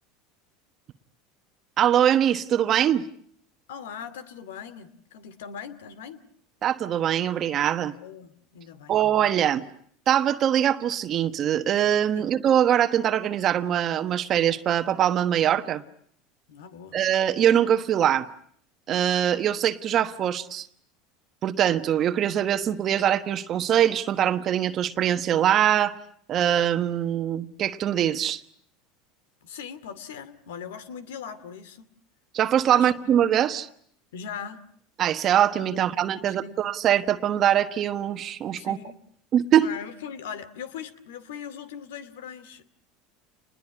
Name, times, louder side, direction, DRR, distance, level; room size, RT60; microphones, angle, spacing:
voice 1, 1.8-3.1 6.6-7.9 8.9-9.7 10.1-15.8 16.9-18.3 18.9-20.7 21.4-26.0 26.3-28.4 32.3-33.7 35.0-38.8 39.3-39.7, right 10 dB, 40° right, 1.2 m, -23 dB
voice 2, 3.7-6.2 8.0-9.0 12.1-12.3 16.5-17.0 29.4-31.9 32.7-32.9 34.1-34.6 35.7-35.8 36.1-36.6 38.6-38.9 39.6-42.7, left 7 dB, 90° left, 2.4 m, -40 dB
28.5 x 21.0 x 9.7 m
supercardioid pair, 120°, 0 cm